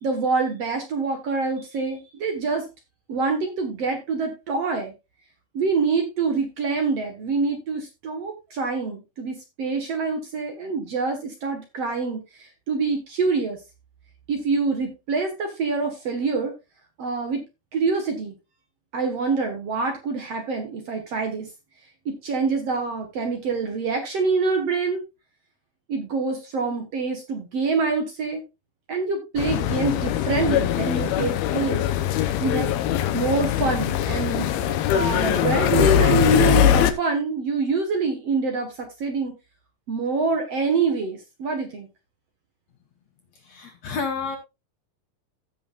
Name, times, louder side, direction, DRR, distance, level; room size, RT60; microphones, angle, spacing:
voice 1, 0.0-2.7 3.1-4.9 5.5-13.6 14.3-16.6 17.0-17.4 17.7-18.3 18.9-21.5 22.1-25.0 25.9-28.4 28.9-31.8 32.4-32.7 33.1-34.5 34.9-39.3 39.9-41.9, right 4 dB, 55° right, 4 dB, 2.2 m, -26 dB
sound 1, 29.4-36.9, left 11 dB, 90° left, 2.8 m, -22 dB
voice 2, 43.5-44.4, left 5 dB, 55° left, 4 dB, 2.1 m, -29 dB
16.0 x 6.9 x 2.5 m, 0.24 s
omnidirectional pair, 4.2 m